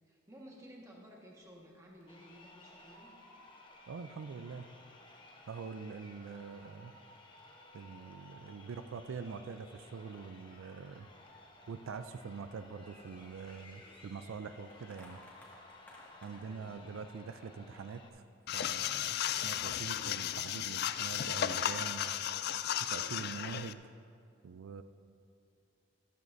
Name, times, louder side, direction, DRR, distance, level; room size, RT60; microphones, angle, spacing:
voice 1, 0.1-3.1 16.5-16.8, equal, 15° right, -2 dB, 1.5 m, -54 dB
Crowd, 2.0-18.1, left 2 dB, 25° left, 0.9 m, -57 dB
voice 2, 3.9-4.7 5.5-6.9 7.7-11.1 11.7-15.2 16.2-18.2 18.5-22.2 22.8-23.9 24.4-24.8, right 5 dB, 85° right, 10 dB, 0.4 m, -44 dB
sound 1, 12.7-16.9 17.4-17.5 18.2-18.5, left 1 dB, 10° left, 1.9 m, -60 dB
sound 2, 18.5-23.7, left 10 dB, 50° left, 0.3 m, -35 dB
14.5 x 12.5 x 2.7 m, 2.4 s
head